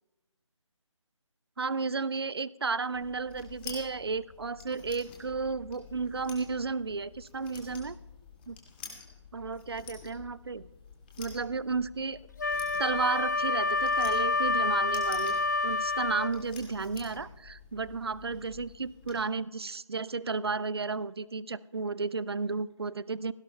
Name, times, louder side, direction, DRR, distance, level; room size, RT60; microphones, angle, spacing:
voice 1, 1.6-8.0 8.5-8.6 9.3-10.7 11.2-12.2 12.8-15.4 15.6-23.3, right 4 dB, 50° right, 20 dB, 0.4 m, -33 dB
sound 1, 2.9-19.1, left 6 dB, 20° left, 2.1 m, -49 dB
Wind instrument woodwind instrument, 12.4-16.4, left 3 dB, 35° left, 0.5 m, -28 dB
17.0 x 17.0 x 2.3 m, 1.1 s
figure-of-eight pair, 155°, 17 cm